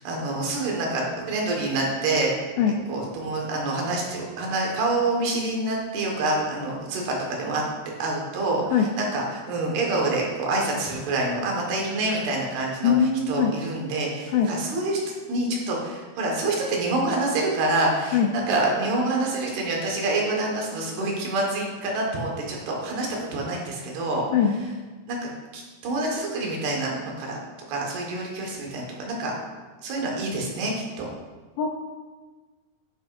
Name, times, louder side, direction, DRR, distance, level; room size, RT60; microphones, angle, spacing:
voice 1, 0.0-2.3 2.9-7.6 8.0-12.9 13.3-24.3 25.1-25.2 25.5-27.4 27.7-29.3 29.8-31.1, right 2 dB, 85° right, -1 dB, 3.7 m, -27 dB
voice 2, 12.8-13.5 14.3-14.5 18.1-18.3 24.3-24.5 31.6-31.7, left 7 dB, 80° left, 2 dB, 2.0 m, -21 dB
11.0 x 9.9 x 2.6 m, 1.3 s
omnidirectional pair, 4.4 m